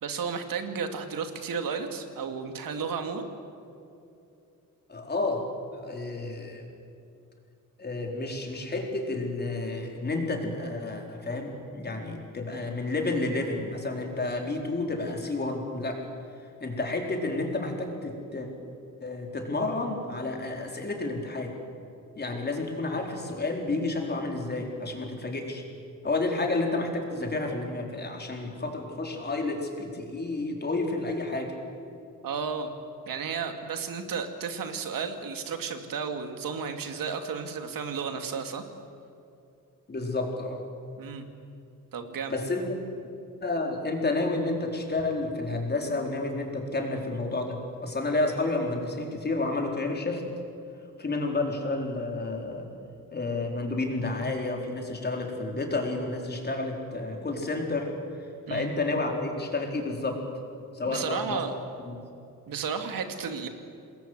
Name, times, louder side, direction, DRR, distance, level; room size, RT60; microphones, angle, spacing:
voice 1, 0.0-3.3 32.2-32.7 33.1-38.6 41.0-41.3 41.9-42.4 58.5-58.7 60.9-61.5 62.5-63.5, right 6 dB, 75° right, 6 dB, 2.6 m, -33 dB
voice 2, 4.9-6.7 7.8-16.0 16.6-18.5 19.0-21.5 22.2-25.6 26.0-31.5 39.9-40.6 42.3-42.8 43.4-50.2 51.0-52.7 53.1-57.9 58.5-60.2 60.7-61.4 61.9-62.0, left 2 dB, 30° left, 2 dB, 4.3 m, -30 dB
27.5 x 21.0 x 8.2 m, 2.7 s
cardioid pair, 130°, 34 cm